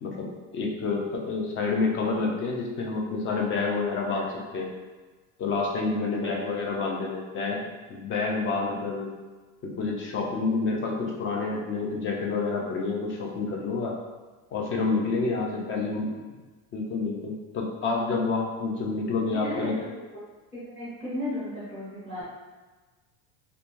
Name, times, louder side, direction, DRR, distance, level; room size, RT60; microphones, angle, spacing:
voice 1, 0.0-4.3 4.5-4.7 5.4-7.6 7.9-9.1 9.6-14.0 14.5-16.1 16.7-19.7, left 4 dB, 30° left, 0 dB, 0.4 m, -28 dB
voice 2, 5.9-6.6 15.5-15.9 19.3-19.8 20.5-22.2, left 1 dB, 15° left, -13 dB, 1.0 m, -35 dB
2.5 x 2.2 x 3.1 m, 1.3 s
cardioid pair, 150°, 41 cm